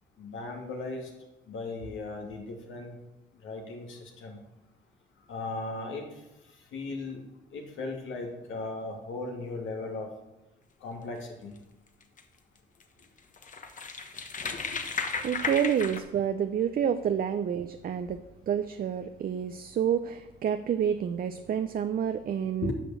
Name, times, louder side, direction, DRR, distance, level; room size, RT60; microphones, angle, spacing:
voice 1, 0.2-1.1 1.5-2.9 3.4-4.4 5.3-6.0 6.7-7.2 7.5-10.1 10.8-11.5 14.5-14.6 22.6-22.7, left 3 dB, 80° left, 1 dB, 2.6 m, -37 dB
sound 1, 12.0-12.2 12.8-12.9 13.2-16.0, left 5 dB, 40° left, 1.3 m, -34 dB
voice 2, 15.2-18.2 18.5-22.7, right 8 dB, 50° right, 9 dB, 0.6 m, -29 dB
10.5 x 6.0 x 7.0 m, 0.94 s
cardioid pair, 90°, 20 cm